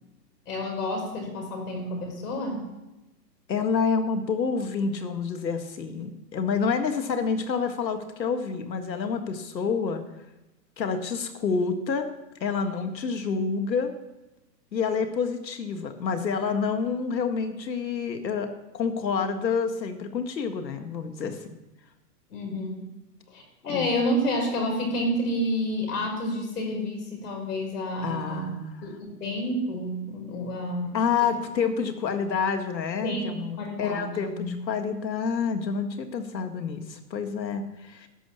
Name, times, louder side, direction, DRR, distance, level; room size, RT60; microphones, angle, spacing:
voice 1, 0.5-2.7 22.3-22.8 23.3-28.4 28.8-31.0 33.0-33.3 33.6-34.6, left 1 dB, 65° left, 1 dB, 4.9 m, -29 dB
voice 2, 3.5-10.0 10.8-13.9 14.7-21.6 23.7-24.0 28.0-28.9 30.9-38.1, left 5 dB, 90° left, 7 dB, 1.9 m, -28 dB
13.0 x 5.5 x 8.5 m, 0.98 s
hypercardioid pair, 160°, 50 cm